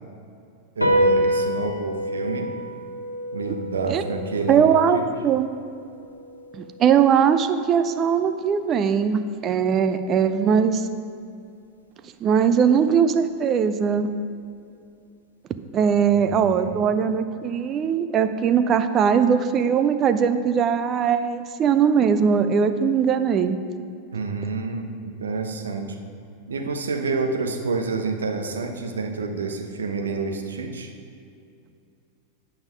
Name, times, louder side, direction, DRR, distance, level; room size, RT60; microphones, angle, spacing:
sound 1, 0.8-7.5, equal, 85° left, 0.8 m, -27 dB
voice 1, 0.8-2.5 3.3-5.0 16.0-16.8 24.1-26.0 26.5-30.9, right 4 dB, 70° right, 5 dB, 0.8 m, -28 dB
voice 2, 4.5-5.5 6.5-10.9 12.2-14.1 15.7-23.6, right 7 dB, 30° right, 10 dB, 0.5 m, -20 dB
8.8 x 5.8 x 5.1 m, 2.5 s
figure-of-eight pair, 90°, 0 cm